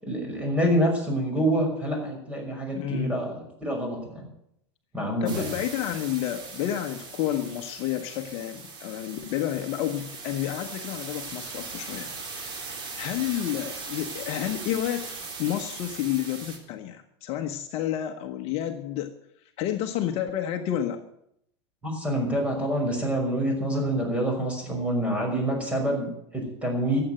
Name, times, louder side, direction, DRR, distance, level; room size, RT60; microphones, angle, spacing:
voice 1, 0.0-4.3 4.9-5.4 21.8-27.0, right 1 dB, 10° right, 1 dB, 5.8 m, -27 dB
voice 2, 2.7-3.1 5.2-15.1 15.4-19.1 19.4-21.0, left 11 dB, 45° left, 6 dB, 1.2 m, -30 dB
sound 1, 5.3-16.6, right 4 dB, 35° right, 3.5 m, -39 dB
13.5 x 7.9 x 9.0 m, 0.75 s
hypercardioid pair, 110°, 14 cm